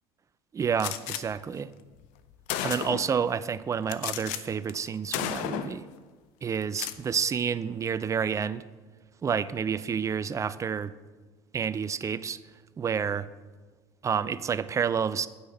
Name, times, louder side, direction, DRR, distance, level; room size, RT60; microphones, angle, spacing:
voice 1, 0.5-1.7 2.6-5.8 6.4-8.6 9.2-10.9 11.5-12.4 12.8-13.3 14.0-15.3, right 7 dB, 25° right, 16 dB, 0.4 m, -29 dB
Gunshot gunfire, 0.8-1.2 2.0-2.1 2.5-3.2 3.9-4.4 4.7-4.9 5.1-5.8 6.6-7.0, left 12 dB, 70° left, 0.6 m, -32 dB
7.8 x 5.7 x 6.5 m, 1.3 s
supercardioid pair, 90°, 13 cm